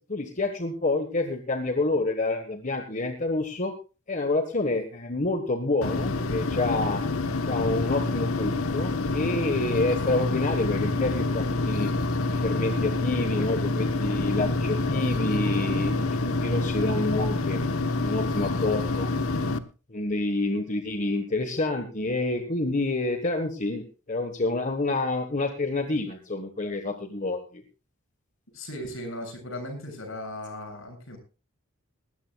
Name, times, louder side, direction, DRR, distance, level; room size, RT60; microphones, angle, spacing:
voice 1, 0.1-3.7 4.1-7.0 7.4-11.9 12.3-17.6 18.0-19.1 19.9-27.6, left 2 dB, 35° left, 6 dB, 1.5 m, -28 dB
sound 1, 5.8-19.6, left 2 dB, 85° left, 1.1 m, -27 dB
voice 2, 28.5-31.2, left 1 dB, 65° left, 3 dB, 7.7 m, -37 dB
19.5 x 16.0 x 2.4 m, 0.33 s
head